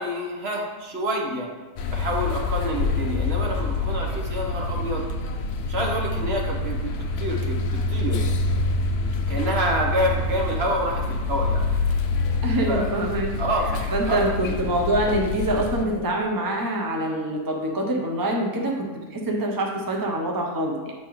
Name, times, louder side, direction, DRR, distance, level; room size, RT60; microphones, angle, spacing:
voice 1, 0.0-1.5 1.9-5.0 5.7-8.2 9.3-11.7 12.7-12.9 13.4-14.3, equal, 45° right, 0 dB, 1.0 m, -28 dB
sound 1, 1.8-15.8, left 3 dB, 75° left, 0.5 m, -26 dB
voice 2, 2.6-2.9 9.3-9.6 12.4-13.3 13.9-20.9, right 1 dB, 30° right, 0 dB, 0.4 m, -25 dB
7.5 x 6.0 x 3.1 m, 1.3 s
omnidirectional pair, 1.7 m